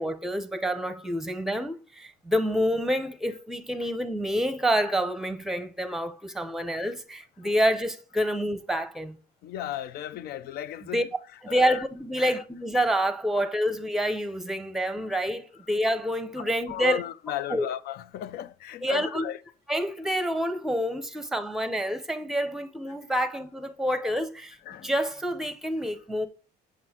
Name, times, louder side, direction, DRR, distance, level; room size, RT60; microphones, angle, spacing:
voice 1, 0.0-9.2 10.9-11.0 11.4-17.0 17.5-17.6 18.8-19.3 19.7-24.6 24.8-26.3, equal, ahead, 0.7 m, -27 dB
voice 2, 9.4-11.1 11.5-11.8 12.2-12.4 16.4-19.4 24.7-25.1, left 11 dB, 70° left, 0.5 m, -35 dB
7.6 x 6.2 x 2.8 m
cardioid pair, 110°, 17 cm